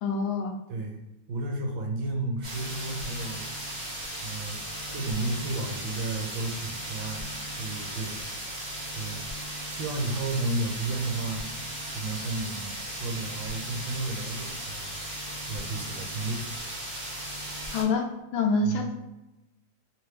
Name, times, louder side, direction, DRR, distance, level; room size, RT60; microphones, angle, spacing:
voice 1, 0.0-0.5 17.7-18.1 18.3-18.9, left 3 dB, 75° left, 2 dB, 1.3 m, -26 dB
voice 2, 1.3-3.4 4.2-4.6 4.9-8.5 8.9-9.2 9.7-11.4 11.9-16.4 18.6-18.8, right 2 dB, 70° right, 1 dB, 1.3 m, -33 dB
sound 1, 2.4-17.8, right 1 dB, 35° right, 0.7 m, -36 dB
3.4 x 3.0 x 3.1 m, 0.98 s
omnidirectional pair, 2.3 m